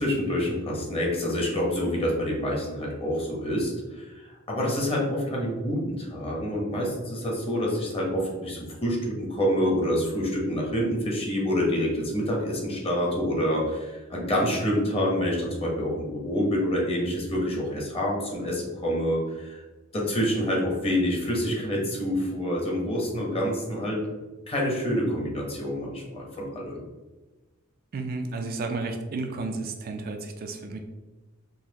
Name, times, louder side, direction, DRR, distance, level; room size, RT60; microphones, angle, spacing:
voice 1, 0.0-19.6 19.9-24.1 24.5-26.8, equal, 30° left, -2 dB, 0.9 m, -27 dB
voice 2, 27.9-30.8, right 3 dB, 45° right, 4 dB, 0.4 m, -32 dB
4.0 x 2.8 x 2.8 m, 1.2 s
head